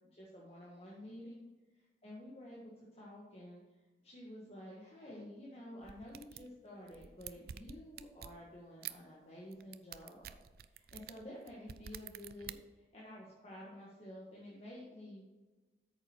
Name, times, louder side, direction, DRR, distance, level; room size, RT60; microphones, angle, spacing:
voice 1, 0.0-1.4 1.7-3.6 4.0-10.3 10.7-15.3, left 1 dB, 35° left, -5 dB, 1.6 m, -51 dB
sound 1, 5.8-6.5 6.9-8.4 8.8-8.9 9.5-12.5, right 10 dB, 55° right, 0.3 m, -48 dB
8.7 x 6.9 x 4.4 m, 1.2 s
head